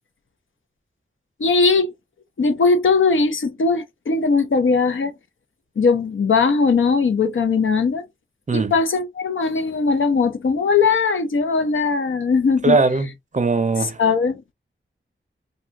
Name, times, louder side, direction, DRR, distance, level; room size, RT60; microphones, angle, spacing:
voice 1, 1.4-1.9 2.4-5.1 5.8-8.0 8.5-12.8 13.8-14.4, left 4 dB, 75° left, 0.6 m, -19 dB
voice 2, 12.6-14.0, right 3 dB, 35° right, 0.5 m, -20 dB
2.6 x 2.3 x 2.8 m
wide cardioid pair, 80°, 20 cm